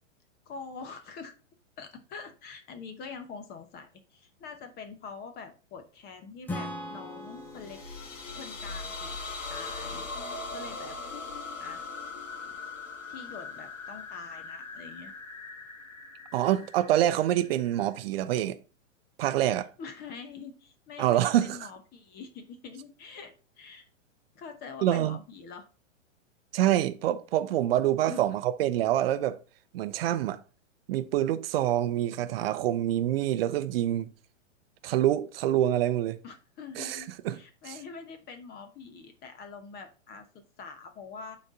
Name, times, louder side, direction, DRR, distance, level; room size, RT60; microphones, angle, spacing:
voice 1, 0.5-1.3 1.8-7.8 8.3-9.2 9.5-10.0 10.5-11.0 11.6-11.9 13.1-15.1 19.8-23.9 24.3-25.6 28.1-28.2 36.2-41.4, left 5 dB, 25° left, 0.9 m, -44 dB
Acoustic guitar / Strum, 6.5-10.1, left 1 dB, 5° left, 0.4 m, -41 dB
sound 1, 7.4-18.0, left 3 dB, 75° left, 1.7 m, -40 dB
voice 2, 16.3-18.6 19.2-19.7 21.0-21.6 24.8-25.2 26.5-29.4 29.7-30.4 30.9-34.1 34.8-36.2 36.8-37.4 37.7-37.8, right 12 dB, 50° right, 0.6 m, -26 dB
8.9 x 4.2 x 3.8 m
hypercardioid pair, 125°, 39 cm